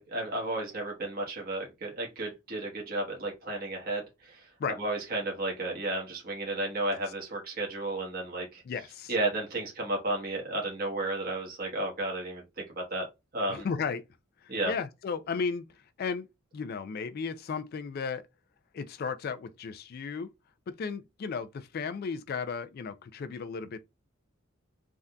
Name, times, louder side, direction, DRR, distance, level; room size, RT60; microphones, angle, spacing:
voice 1, 0.0-4.5 4.8-8.6 9.1-13.1 13.3-13.7 14.5-14.7, right 2 dB, 45° right, 1.1 m, -33 dB
voice 2, 8.7-9.1 13.5-14.0 14.4-15.7 16.0-16.3 16.5-18.2 18.7-20.3 20.7-23.8, left 5 dB, 45° left, 0.3 m, -34 dB
3.5 x 2.6 x 2.2 m
head